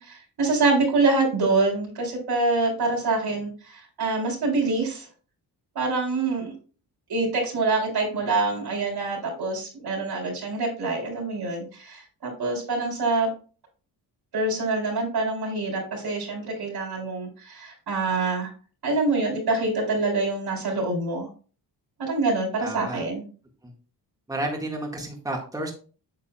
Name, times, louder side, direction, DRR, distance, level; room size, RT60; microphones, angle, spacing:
voice 1, 0.0-5.1 5.8-6.5 7.1-13.3 14.3-18.5 18.8-21.3 22.0-23.2, right 3 dB, 65° right, 0 dB, 3.8 m, -25 dB
voice 2, 22.6-23.0 24.3-25.7, right 1 dB, 10° right, -1 dB, 1.8 m, -31 dB
8.7 x 7.1 x 2.3 m, 0.38 s
cardioid pair, 115°, 41 cm